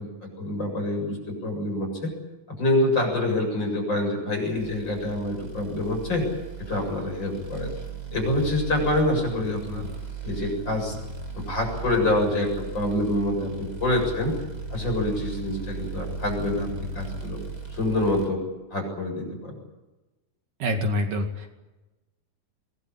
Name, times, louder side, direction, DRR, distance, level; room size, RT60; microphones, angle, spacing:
voice 1, 0.0-2.1 2.5-6.2 6.7-7.7 8.1-9.9 10.2-10.9 11.3-14.3 14.7-16.7 16.9-17.4 17.7-18.4 18.7-19.6, left 1 dB, 30° left, 2 dB, 8.1 m, -26 dB
sound 1, 4.5-18.3, right 4 dB, 15° right, 2.0 m, -37 dB
voice 2, 20.6-21.5, equal, 65° right, 4 dB, 3.8 m, -26 dB
24.5 x 21.0 x 8.7 m, 1.1 s
omnidirectional pair, 4.1 m